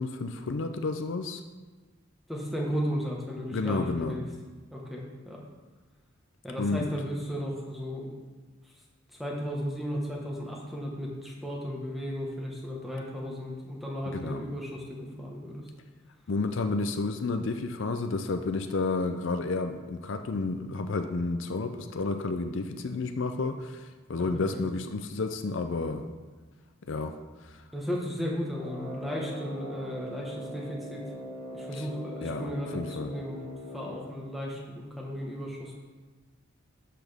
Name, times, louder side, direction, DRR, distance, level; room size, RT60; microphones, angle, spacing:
voice 1, 0.0-1.4 3.5-4.2 6.6-6.9 14.1-14.4 16.3-26.1 26.9-27.1 27.4-27.6 31.7-31.9 32.2-33.1, left 3 dB, 65° left, 7 dB, 0.5 m, -31 dB
voice 2, 2.3-4.2 4.7-5.4 6.4-8.2 9.2-15.7 24.3-24.6 27.7-31.0 31.5-33.4 33.7-35.7, equal, ahead, -3 dB, 1.4 m, -35 dB
Brass instrument, 28.5-34.1, equal, 25° right, 2.8 m, -41 dB
12.0 x 5.9 x 3.5 m, 1.3 s
head